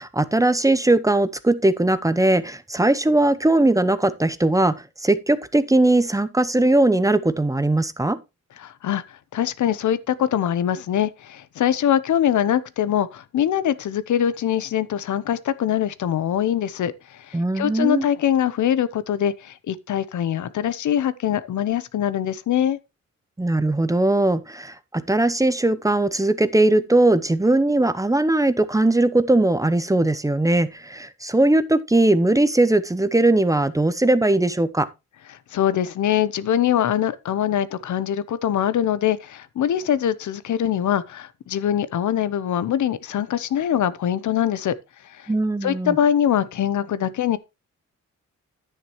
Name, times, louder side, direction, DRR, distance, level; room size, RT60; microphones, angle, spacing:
voice 1, 0.0-8.2 17.3-18.0 23.4-34.9 45.3-46.0, right 2 dB, 10° right, 0.8 m, -19 dB
voice 2, 8.6-22.8 35.5-44.8 45.0-45.3 45.6-47.4, left 10 dB, 80° left, 0.8 m, -23 dB
10.0 x 9.4 x 3.0 m
cardioid pair, 115°, 29 cm